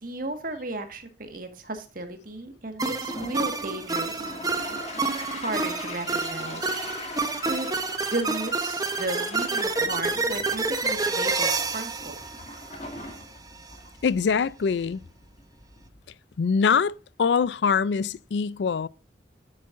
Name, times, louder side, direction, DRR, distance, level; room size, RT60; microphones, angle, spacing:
voice 1, 0.0-4.3 4.7-4.9 5.4-6.7 7.4-7.7 8.1-12.2, right 2 dB, 50° right, 1.6 m, -34 dB
sound 1, 2.8-13.2, right 3 dB, 20° right, 0.9 m, -28 dB
Toilet flush, 2.9-16.0, left 2 dB, 40° left, 2.0 m, -41 dB
voice 2, 14.0-15.0 16.4-16.9 17.2-18.9, left 6 dB, 75° left, 0.4 m, -23 dB
9.6 x 8.7 x 2.5 m
head